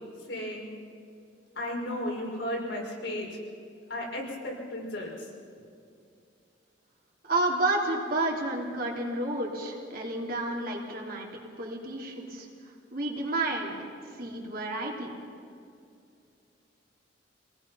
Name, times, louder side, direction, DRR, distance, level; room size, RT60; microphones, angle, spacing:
voice 1, 0.3-0.7 1.6-3.3 3.9-5.3, left 1 dB, 80° left, -2 dB, 5.5 m, -34 dB
voice 2, 7.2-11.3 11.6-13.8 14.1-15.1, right 2 dB, 55° right, -1 dB, 3.4 m, -31 dB
27.0 x 18.5 x 5.8 m, 2.4 s
head